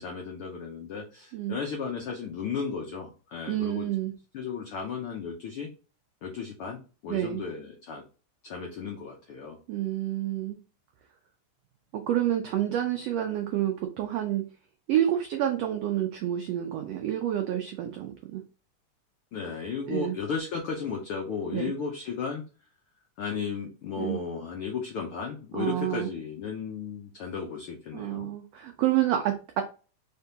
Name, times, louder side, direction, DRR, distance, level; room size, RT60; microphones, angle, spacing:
voice 1, 0.0-3.9 4.3-5.7 6.2-8.0 8.4-9.6 19.3-22.4 23.2-28.3, left 5 dB, 90° left, 1 dB, 1.2 m, -34 dB
voice 2, 3.5-4.1 7.1-7.4 9.7-10.6 11.9-14.4 14.9-18.4 19.9-20.1 21.5-21.7 24.0-24.2 25.5-26.1 27.9-29.6, right 12 dB, 85° right, 5 dB, 1.4 m, -28 dB
4.7 x 3.5 x 2.8 m, 0.34 s
omnidirectional pair, 3.6 m